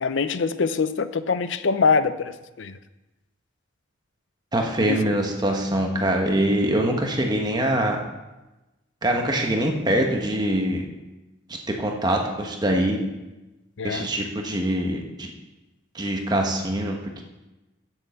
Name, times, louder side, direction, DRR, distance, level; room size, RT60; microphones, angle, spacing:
voice 1, 0.0-2.7 4.8-5.0 13.8-14.1, left 5 dB, 60° left, 12 dB, 0.5 m, -24 dB
voice 2, 4.5-8.0 9.0-10.8 11.7-13.0 13.8-15.3 15.9-17.2, right 1 dB, 20° right, 2 dB, 1.2 m, -24 dB
8.0 x 7.3 x 7.2 m, 1.1 s
head